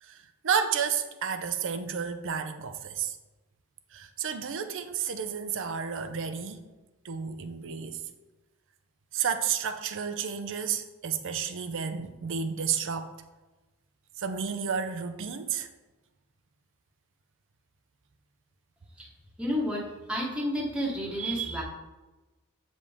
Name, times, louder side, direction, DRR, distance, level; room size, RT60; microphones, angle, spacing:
voice 1, 0.0-3.2 3.9-6.6 7.0-8.0 9.1-13.1 14.2-15.7, right 7 dB, 60° right, 0.6 m, -31 dB
voice 2, 19.4-21.6, equal, 5° right, 1.1 m, -31 dB
8.2 x 5.2 x 3.5 m
head